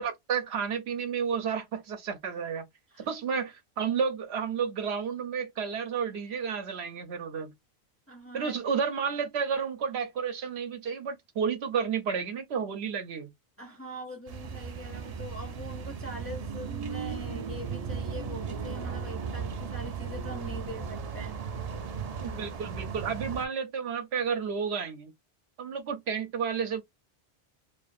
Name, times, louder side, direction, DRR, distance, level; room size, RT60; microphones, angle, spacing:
voice 1, 0.0-2.6 3.1-7.5 8.3-13.3 22.2-25.1 25.6-26.8, right 6 dB, 75° right, 0.8 m, -31 dB
voice 2, 8.1-8.5 13.6-21.4, equal, 15° left, 0.6 m, -42 dB
sound 1, 14.3-23.5, right 6 dB, 50° right, 0.4 m, -36 dB
2.5 x 2.3 x 2.4 m
omnidirectional pair, 1.1 m